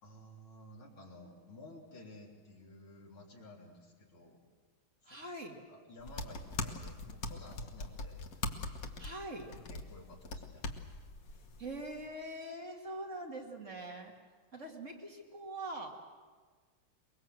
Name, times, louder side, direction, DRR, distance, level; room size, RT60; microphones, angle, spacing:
voice 1, 0.0-4.4 5.0-5.2 5.7-8.3 8.8-9.0 9.7-10.7, left 1 dB, 85° left, -4 dB, 4.3 m, -54 dB
voice 2, 5.1-5.6 9.0-9.5 11.6-14.1 14.5-15.9, right 1 dB, 35° right, 0 dB, 2.5 m, -43 dB
sound 1, 6.0-12.1, left 3 dB, 45° left, 1.6 m, -42 dB
23.0 x 22.0 x 7.7 m, 1.5 s
omnidirectional pair, 2.2 m